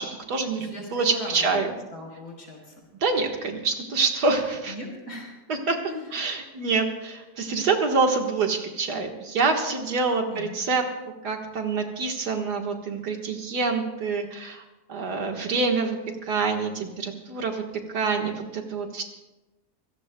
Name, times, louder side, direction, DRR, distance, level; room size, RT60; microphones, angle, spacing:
voice 1, 0.0-1.7 3.0-4.7 5.5-5.8 6.1-10.8 11.2-14.6 14.9-17.6 17.9-19.0, right 4 dB, 75° right, 3 dB, 2.1 m, -26 dB
voice 2, 0.6-1.5 1.9-2.8 4.7-5.3 5.9-6.3 10.3-10.6, left 1 dB, 65° left, 0 dB, 4.5 m, -39 dB
26.5 x 17.0 x 2.2 m, 1.1 s
omnidirectional pair, 1.7 m